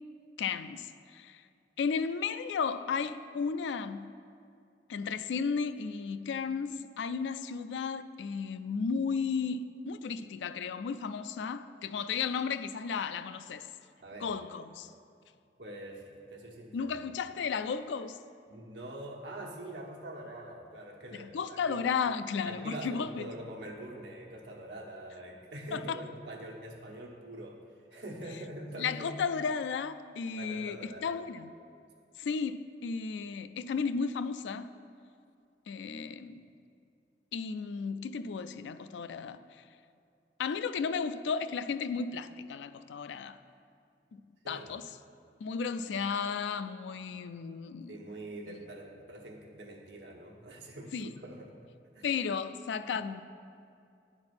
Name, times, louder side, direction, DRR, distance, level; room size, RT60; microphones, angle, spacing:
voice 1, 0.4-1.4 1.8-4.1 4.9-13.7 14.2-14.9 16.7-18.2 21.2-23.3 25.7-26.0 28.8-31.5 32.2-34.7 35.7-36.5 37.3-39.6 40.4-43.4 44.1-44.2 44.5-44.8 45.4-48.0 50.9-51.1 52.0-53.2, left 5 dB, 85° left, 0.3 m, -34 dB
voice 2, 14.0-14.3 15.6-17.0 18.5-21.8 22.4-29.2 30.4-31.1 36.2-36.3 44.4-44.7 47.9-51.5 51.9-52.1, right 1 dB, 80° right, 1.2 m, -44 dB
9.6 x 4.4 x 5.9 m
head